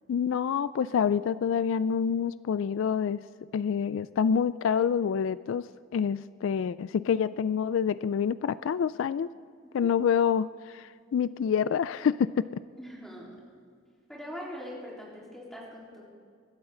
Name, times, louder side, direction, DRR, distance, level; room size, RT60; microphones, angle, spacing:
voice 1, 0.1-3.2 3.5-5.6 5.9-9.3 9.7-12.5, left 7 dB, 70° left, 17 dB, 0.3 m, -27 dB
voice 2, 12.8-13.4 14.1-16.0, equal, ahead, -6 dB, 4.0 m, -42 dB
24.5 x 13.0 x 3.9 m, 2.2 s
head